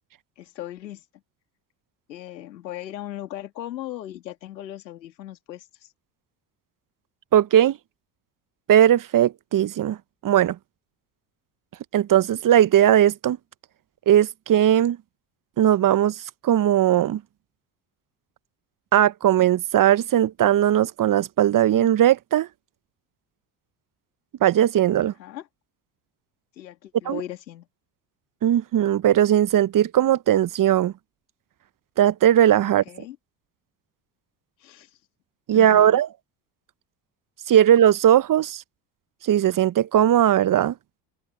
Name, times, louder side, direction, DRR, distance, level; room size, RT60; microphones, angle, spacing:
voice 1, 0.4-1.0 2.1-5.9 25.0-25.5 26.6-27.7 32.9-33.2 34.6-35.0 35.5-36.0, left 13 dB, 85° left, 2.4 m, -38 dB
voice 2, 7.3-7.8 8.7-10.0 10.2-10.6 11.9-13.4 14.1-15.0 15.6-16.2 16.4-17.2 18.9-22.5 24.4-25.1 27.0-27.2 28.4-30.9 32.0-32.8 35.5-36.1 37.5-38.6 39.2-40.7, right 11 dB, 40° right, 1.1 m, -18 dB
hypercardioid pair, 60°, 49 cm